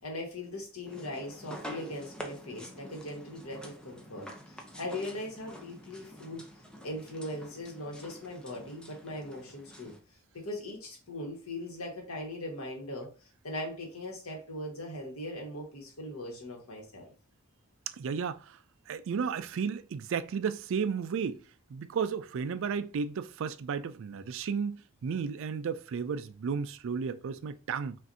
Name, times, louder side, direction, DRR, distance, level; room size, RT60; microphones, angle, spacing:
voice 1, 0.0-6.4 6.8-9.9 10.3-13.1 13.4-17.1, left 1 dB, 85° left, 1.5 m, -40 dB
sound 1, 0.9-10.0, equal, 5° left, 0.6 m, -47 dB
voice 2, 18.0-18.6 18.9-21.4 21.7-28.0, right 6 dB, 65° right, 0.4 m, -33 dB
5.7 x 2.6 x 2.7 m
head